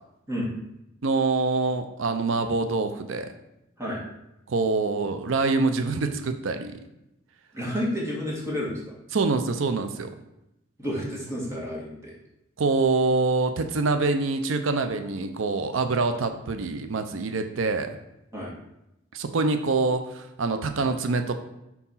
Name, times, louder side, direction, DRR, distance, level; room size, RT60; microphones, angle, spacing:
voice 1, 1.0-3.3 4.5-6.8 9.1-10.1 12.6-18.0 19.1-21.4, right 3 dB, 80° right, 7 dB, 0.6 m, -25 dB
voice 2, 7.5-8.9 10.8-12.1 18.3-18.5, equal, 15° right, -4 dB, 1.9 m, -30 dB
4.6 x 4.1 x 5.5 m, 0.88 s
head